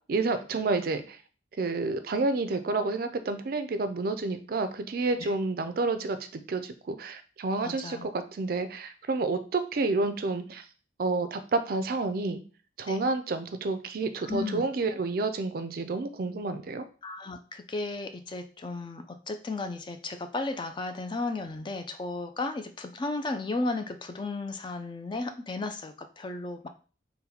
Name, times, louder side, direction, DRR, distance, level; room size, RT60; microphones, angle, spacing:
voice 1, 0.1-1.2 1.6-10.6 11.0-12.4 12.8-16.8, right 3 dB, 55° right, 9 dB, 0.4 m, -29 dB
voice 2, 7.6-8.1 12.9-13.0 14.2-14.6 17.0-26.7, left 3 dB, 25° left, 7 dB, 0.4 m, -34 dB
3.9 x 2.2 x 4.2 m, 0.38 s
head